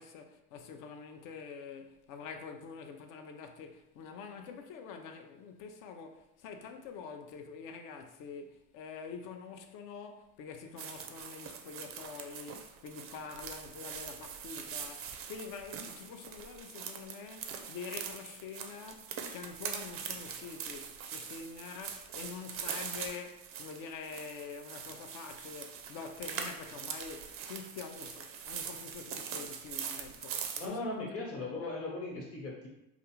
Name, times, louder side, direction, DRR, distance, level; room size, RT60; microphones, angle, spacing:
voice 1, 0.0-31.3 31.6-31.9, left 5 dB, 50° left, 0.5 m, -46 dB
sound 1, 10.8-30.7, right 7 dB, 35° right, 0.4 m, -42 dB
voice 2, 30.6-32.7, left 2 dB, 35° left, 1.0 m, -38 dB
2.4 x 2.4 x 2.9 m
hypercardioid pair, 75°, 42 cm